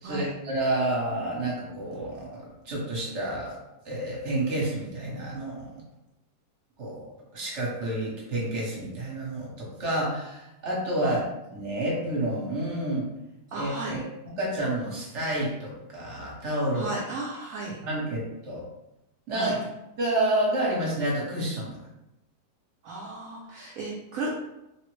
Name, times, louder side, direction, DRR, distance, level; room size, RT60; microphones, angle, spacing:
voice 1, 0.0-3.6 3.8-5.8 6.8-11.2 11.5-13.1 13.6-14.0 14.2-16.9 17.8-18.6 19.3-19.5 20.0-21.8, right 1 dB, 50° right, -4 dB, 1.1 m, -29 dB
voice 2, 13.5-14.0 16.7-17.8 19.3-19.5 22.8-24.3, right 2 dB, 70° right, -3 dB, 0.8 m, -34 dB
3.5 x 2.0 x 3.0 m, 0.91 s
omnidirectional pair, 1.8 m